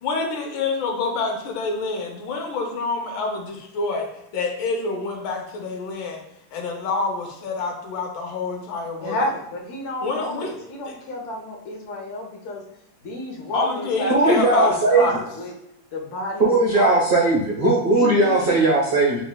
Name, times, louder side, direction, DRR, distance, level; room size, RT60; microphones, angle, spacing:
voice 1, 0.0-4.1 4.3-6.2 6.5-9.3 10.0-10.5 10.9-11.0 13.5-15.2, left 3 dB, 70° left, 2 dB, 1.5 m, -27 dB
voice 2, 9.0-12.6 13.0-15.1 15.4-15.5 15.9-17.0 17.9-18.6, equal, 85° left, -1 dB, 0.6 m, -30 dB
voice 3, 14.1-15.1 16.4-19.2, right 2 dB, 85° right, -5 dB, 0.5 m, -18 dB
6.7 x 3.0 x 2.2 m, 0.83 s
omnidirectional pair, 2.4 m